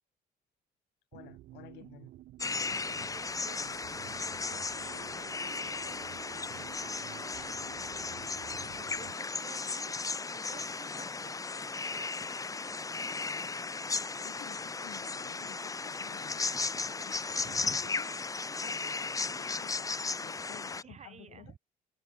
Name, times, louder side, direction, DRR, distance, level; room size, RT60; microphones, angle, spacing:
voice 1, 1.1-2.1 14.2-18.1 18.5-21.5, left 18 dB, 85° left, 2.9 m, -53 dB
sound 1, 1.1-9.1, right 15 dB, 70° right, 1.8 m, -51 dB
sound 2, 2.4-20.8, left 4 dB, 20° left, 1.2 m, -36 dB
voice 2, 2.6-8.5 8.8-9.9 10.2-12.7 17.4-17.9 20.8-21.6, right 7 dB, 40° right, 3.9 m, -54 dB
cardioid pair, 110°, 17 cm